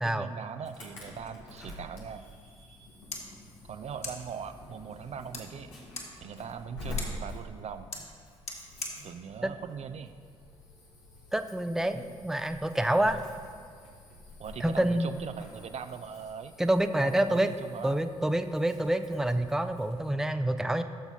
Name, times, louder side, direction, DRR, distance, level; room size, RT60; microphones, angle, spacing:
voice 1, 0.0-2.2 3.7-5.8 6.2-7.9 9.0-10.1 14.4-16.5 17.0-18.0, right 7 dB, 45° right, 9 dB, 0.5 m, -40 dB
Insect / Alarm, 0.6-20.1, left 2 dB, 85° left, 1.6 m, -47 dB
sound 1, 2.7-10.7, left 2 dB, 45° left, 2.4 m, -45 dB
voice 2, 11.3-13.2 14.6-15.1 16.6-17.5 17.8-20.8, right 1 dB, 5° right, 9 dB, 0.6 m, -27 dB
15.0 x 7.0 x 4.1 m, 2.1 s
figure-of-eight pair, 45°, 16 cm